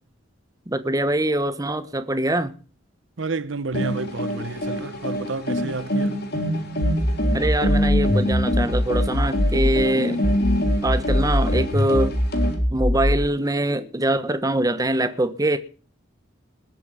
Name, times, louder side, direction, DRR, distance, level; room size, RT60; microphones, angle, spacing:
voice 1, 0.7-2.5 7.3-10.2 10.8-12.1 12.7-15.6, right 1 dB, 20° right, 1.1 m, -23 dB
voice 2, 3.2-6.2, right 3 dB, 75° right, 0.9 m, -30 dB
sound 1, 3.7-12.6, equal, 55° left, 3.7 m, -26 dB
sound 2, 6.8-9.8 10.2-13.3, left 1 dB, 30° left, 1.3 m, -22 dB
20.0 x 8.3 x 5.5 m
head